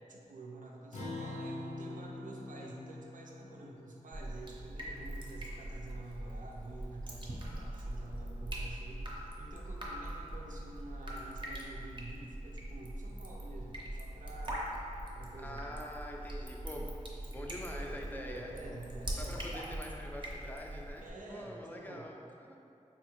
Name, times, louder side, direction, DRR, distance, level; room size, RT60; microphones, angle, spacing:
voice 1, 0.1-14.6 15.1-15.7 17.7-19.4 21.0-22.1, right 2 dB, 85° right, -1 dB, 0.4 m, -49 dB
Acoustic guitar, 0.9-5.6, left 2 dB, 65° left, 0.6 m, -45 dB
Drip, 4.1-21.1, right 1 dB, 35° right, 0.6 m, -42 dB
voice 2, 15.4-16.9 17.3-18.7 19.2-22.2 22.5-22.6, left 1 dB, 15° left, 0 dB, 0.4 m, -45 dB
3.6 x 2.4 x 3.0 m, 2.6 s
wide cardioid pair, 55°, 13 cm